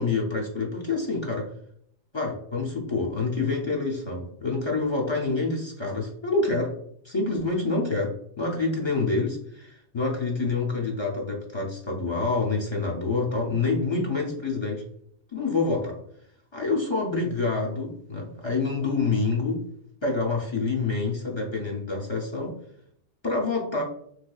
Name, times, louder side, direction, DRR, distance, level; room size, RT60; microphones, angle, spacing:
voice 1, 0.0-1.5 2.1-6.8 7.0-14.8 15.3-16.0 16.5-19.6 20.0-22.6 23.2-23.8, left 3 dB, 35° left, -2 dB, 0.4 m, -27 dB
3.2 x 3.2 x 2.2 m, 0.69 s
omnidirectional pair, 1.1 m